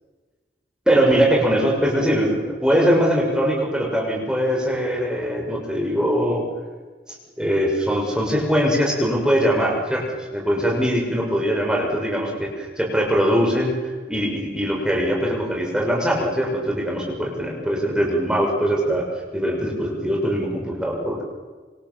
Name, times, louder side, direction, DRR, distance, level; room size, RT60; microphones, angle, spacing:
voice 1, 0.9-6.5 7.4-12.5 12.9-19.0 19.3-21.2, equal, 5° right, -1 dB, 6.9 m, -21 dB
28.0 x 27.0 x 7.4 m, 1.4 s
head